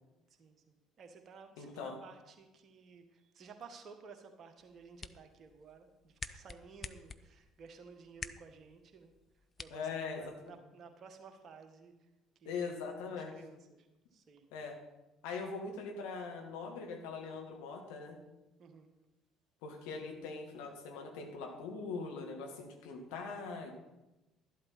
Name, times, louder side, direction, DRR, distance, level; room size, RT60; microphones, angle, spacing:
voice 1, 0.4-12.1 12.3-12.8 13.1-14.5 18.6-18.9, right 5 dB, 45° right, 6 dB, 1.6 m, -55 dB
voice 2, 1.6-2.0 9.7-10.5 12.4-13.3 14.5-14.8 15.2-18.2 19.6-23.7, left 4 dB, 65° left, 2 dB, 1.7 m, -41 dB
sound 1, 4.6-10.6, left 4 dB, 30° left, 0.6 m, -50 dB
12.5 x 11.5 x 4.3 m, 1.0 s
figure-of-eight pair, 55°, 0 cm